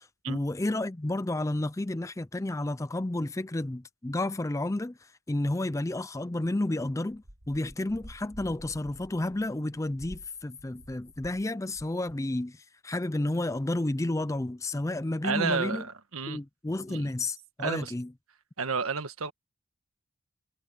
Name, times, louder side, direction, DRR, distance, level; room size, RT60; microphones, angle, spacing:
voice 1, 0.0-15.8 16.3-18.1, left 1 dB, 15° left, 0.4 m, -31 dB
sound 1, 7.1-11.5 11.7-12.1, equal, 65° right, 5.4 m, -50 dB
voice 2, 15.2-16.4 16.9-17.1 17.6-17.9 18.6-19.3, right 5 dB, 85° right, 1.5 m, -31 dB
head